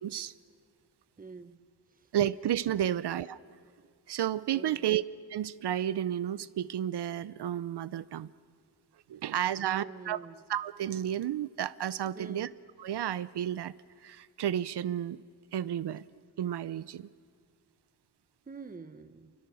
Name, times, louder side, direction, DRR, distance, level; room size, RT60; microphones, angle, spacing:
voice 1, 0.0-0.3 2.1-3.4 4.1-5.0 5.3-8.3 9.1-10.2 10.5-12.5 12.8-13.7 14.0-15.2 15.5-16.0 16.4-17.1, right 11 dB, 75° right, 16 dB, 0.6 m, -32 dB
voice 2, 1.2-1.6 1.9-2.1 4.5-4.9 9.5-10.4 12.1-12.5 18.5-19.3, right 4 dB, 20° right, 11 dB, 0.8 m, -47 dB
29.5 x 25.0 x 6.3 m, 2.3 s
wide cardioid pair, 175°, 41 cm